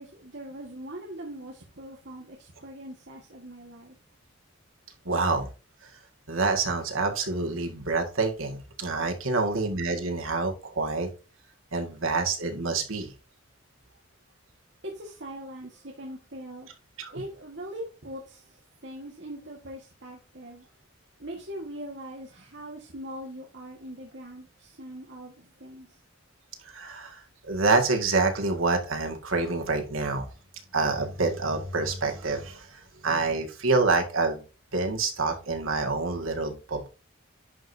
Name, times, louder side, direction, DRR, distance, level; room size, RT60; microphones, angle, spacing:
voice 1, 0.0-3.9 14.8-16.7 17.1-20.7 21.2-26.0, right 1 dB, 60° right, 1.6 m, -41 dB
voice 2, 5.1-5.5 6.3-11.1 11.7-13.1 17.0-17.1 26.7-27.2 27.5-30.3 30.7-34.4 34.7-36.9, right 3 dB, 90° right, 2.0 m, -27 dB
10.5 x 5.1 x 2.8 m
head